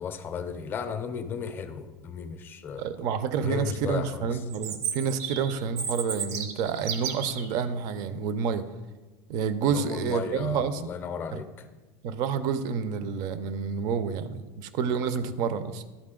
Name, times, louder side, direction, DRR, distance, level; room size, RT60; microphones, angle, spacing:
voice 1, 0.0-2.9 3.4-4.4 9.7-11.7, left 6 dB, 25° left, 9 dB, 0.5 m, -34 dB
voice 2, 2.8-8.7 9.3-10.8 11.3-11.4 12.0-15.8, right 6 dB, 50° right, 13 dB, 0.5 m, -29 dB
Chirp tweet, 4.5-7.5, right 7 dB, 75° right, 0.9 m, -33 dB
11.5 x 4.1 x 3.7 m, 1.2 s
supercardioid pair, 155°, 8 cm